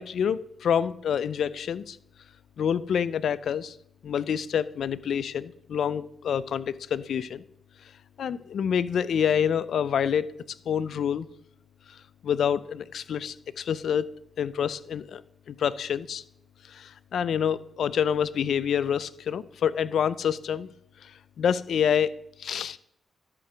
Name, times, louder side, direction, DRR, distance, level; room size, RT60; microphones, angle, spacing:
voice 1, 0.0-2.0 2.6-3.8 4.0-7.4 8.2-10.3 10.7-11.3 11.9-12.0 12.2-14.1 14.4-15.2 15.5-16.2 16.7-20.7 21.0-21.1 21.4-22.1 22.4-22.8, left 8 dB, 70° left, 17 dB, 0.4 m, -27 dB
12.5 x 4.4 x 5.0 m, 0.72 s
cardioid pair, 65°, 0 cm